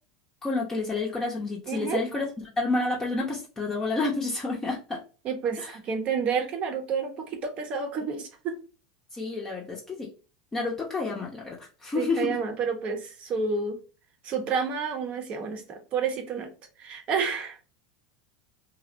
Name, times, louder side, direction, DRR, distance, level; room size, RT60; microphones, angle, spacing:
voice 1, 0.4-2.2 2.6-5.0 5.6-5.7 9.1-10.1 10.5-12.3, left 3 dB, 15° left, -3 dB, 0.6 m, -29 dB
voice 2, 1.7-2.0 5.2-8.6 11.9-13.8 14.2-16.5 16.8-17.6, right 5 dB, 40° right, 5 dB, 0.8 m, -30 dB
2.7 x 2.1 x 2.5 m, 0.35 s
hypercardioid pair, 95°, 3 cm